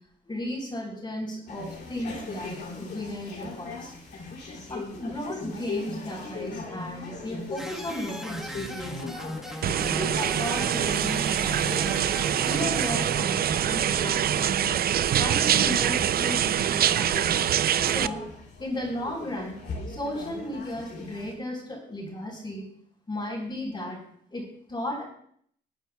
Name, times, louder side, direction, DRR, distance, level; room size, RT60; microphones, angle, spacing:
voice 1, 0.3-3.9 4.7-9.3 9.8-12.1 12.4-14.8 15.2-17.5 17.8-18.3 18.6-19.6 19.9-22.7 23.1-24.0 24.3-25.0, left 1 dB, 25° left, -7 dB, 3.9 m, -35 dB
sound 1, 1.5-21.3, left 3 dB, 55° left, 2.9 m, -40 dB
sound 2, 7.6-13.1, equal, ahead, 1.4 m, -39 dB
sound 3, 9.6-18.1, right 10 dB, 50° right, 0.4 m, -24 dB
23.5 x 9.1 x 2.3 m, 0.63 s
cardioid pair, 90°, 20 cm